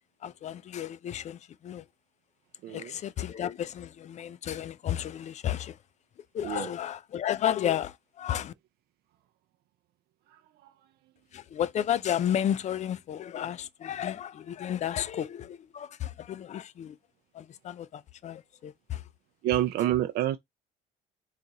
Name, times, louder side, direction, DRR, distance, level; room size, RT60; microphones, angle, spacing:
voice 1, 0.2-1.9 2.7-5.8 6.3-8.5 11.3-17.0 17.3-19.1, left 10 dB, 45° left, 0.4 m, -32 dB
voice 2, 10.3-10.7 19.4-20.4, right 13 dB, 70° right, 0.4 m, -28 dB
3.9 x 2.4 x 4.0 m
cardioid pair, 110°, 17 cm